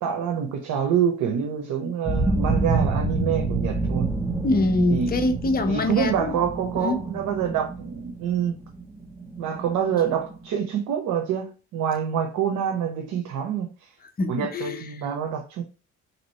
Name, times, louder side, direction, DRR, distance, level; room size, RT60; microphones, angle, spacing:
voice 1, 0.0-4.1 4.9-5.1 5.7-8.6 9.4-13.9 14.3-15.6, right 8 dB, 85° right, 0.8 m, -26 dB
sound 1, 2.1-10.5, right 3 dB, 5° right, 0.8 m, -28 dB
voice 2, 4.4-6.4 6.8-7.0 14.2-14.8, left 2 dB, 30° left, 0.7 m, -24 dB
3.4 x 2.9 x 4.1 m
cardioid pair, 90°, 30 cm